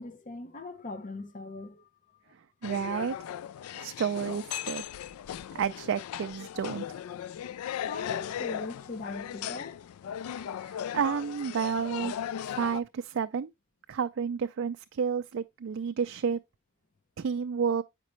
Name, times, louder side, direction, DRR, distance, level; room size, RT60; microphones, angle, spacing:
voice 1, 0.0-1.9 7.9-9.8, left 3 dB, 35° left, 0.6 m, -40 dB
sound 1, 2.6-12.8, left 9 dB, 85° left, 0.3 m, -37 dB
voice 2, 2.6-3.2 3.8-4.8 5.5-7.0 10.6-12.1 12.4-13.5 13.9-16.4 17.2-17.8, right 6 dB, 60° right, 0.3 m, -31 dB
8.3 x 5.2 x 3.1 m
head